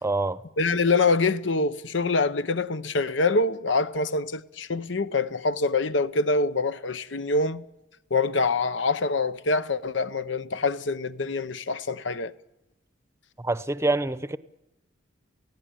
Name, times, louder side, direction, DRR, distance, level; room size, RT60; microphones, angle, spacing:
voice 1, 0.0-0.4 13.4-14.4, right 2 dB, 15° right, 0.8 m, -26 dB
voice 2, 0.6-7.6 8.1-12.3, left 3 dB, 75° left, 0.9 m, -25 dB
28.5 x 16.5 x 9.0 m
head